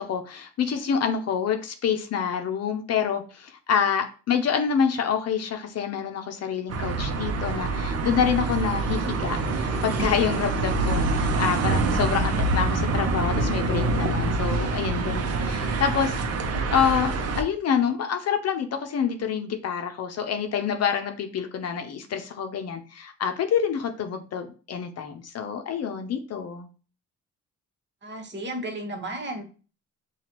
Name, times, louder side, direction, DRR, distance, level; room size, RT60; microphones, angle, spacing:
voice 1, 0.0-16.2 16.7-26.7, left 7 dB, 55° left, 6 dB, 0.7 m, -27 dB
sound 1, 6.7-17.4, right 3 dB, 55° right, 0.7 m, -26 dB
voice 2, 28.0-29.5, right 1 dB, 35° right, 2 dB, 1.2 m, -33 dB
5.7 x 2.4 x 2.9 m, 0.37 s
cardioid pair, 90°, 30 cm